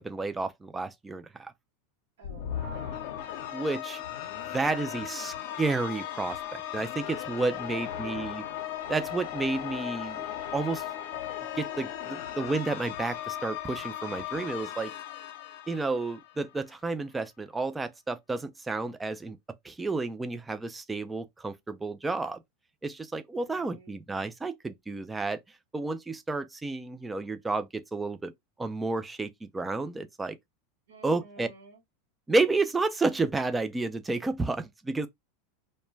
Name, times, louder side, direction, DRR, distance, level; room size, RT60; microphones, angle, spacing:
voice 1, 0.0-1.5 3.5-4.0 4.5-8.4 8.9-10.2 10.5-10.8 11.6-14.9 15.7-19.4 19.6-22.4 22.8-25.4 25.7-28.3 28.6-30.4 31.0-31.5 32.3-35.1, right 3 dB, 10° right, 0.3 m, -31 dB
sound 1, 2.2-16.6, left 11 dB, 65° left, 0.6 m, -37 dB
voice 2, 2.2-3.1 7.7-8.6 23.4-23.9 30.9-31.8, right 4 dB, 90° right, 0.7 m, -48 dB
2.2 x 2.1 x 3.1 m
hypercardioid pair, 115°, 0 cm